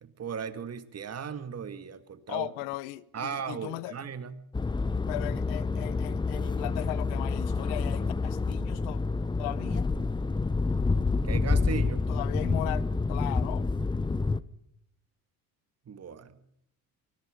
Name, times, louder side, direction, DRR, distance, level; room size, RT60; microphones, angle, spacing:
voice 1, 0.0-2.5 3.1-4.4 11.2-12.1 15.9-16.4, right 7 dB, 40° right, 2.2 m, -37 dB
voice 2, 2.3-4.0 5.1-9.0 9.4-9.9 12.1-13.7, left 18 dB, 90° left, 1.1 m, -37 dB
sound 1, 4.5-14.4, left 3 dB, 10° left, 0.8 m, -28 dB
23.5 x 21.5 x 5.2 m
supercardioid pair, 100°, 39 cm